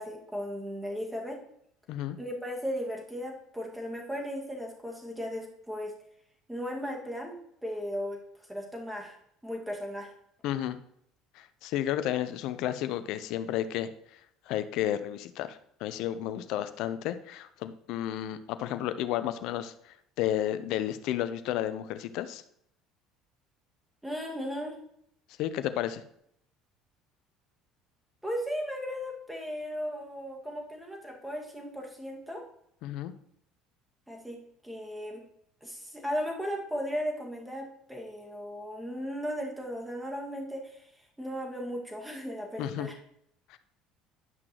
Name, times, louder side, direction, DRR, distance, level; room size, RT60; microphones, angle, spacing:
voice 1, 0.0-1.4 2.2-5.9 6.5-7.4 7.6-9.2 9.4-10.1 24.0-24.7 28.2-32.4 34.1-34.4 34.6-35.2 35.6-40.8 41.2-42.9, equal, 5° right, 0 dB, 2.1 m, -36 dB
voice 2, 10.4-10.8 11.3-14.2 14.5-22.4 25.4-26.0 32.8-33.1 42.6-42.9 43.5-43.6, left 12 dB, 65° left, 12 dB, 0.6 m, -32 dB
10.5 x 5.9 x 3.1 m, 0.71 s
hypercardioid pair, 65°, 0 cm